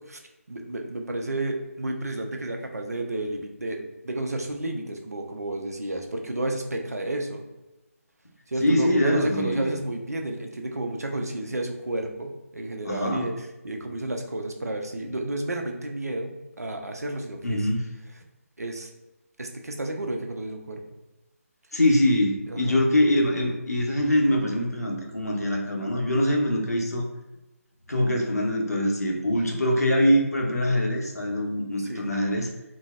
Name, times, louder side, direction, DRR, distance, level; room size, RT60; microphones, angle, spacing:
voice 1, 0.5-7.4 8.5-17.7 18.6-18.9 19.4-20.8 22.5-22.8 31.8-32.0, right 1 dB, 80° right, 3 dB, 0.5 m, -31 dB
voice 2, 8.6-9.8 12.9-13.3 17.4-17.8 21.7-27.1 27.9-32.5, left 1 dB, 80° left, 0 dB, 0.7 m, -23 dB
3.8 x 2.0 x 2.4 m, 1.0 s
figure-of-eight pair, 150°, 8 cm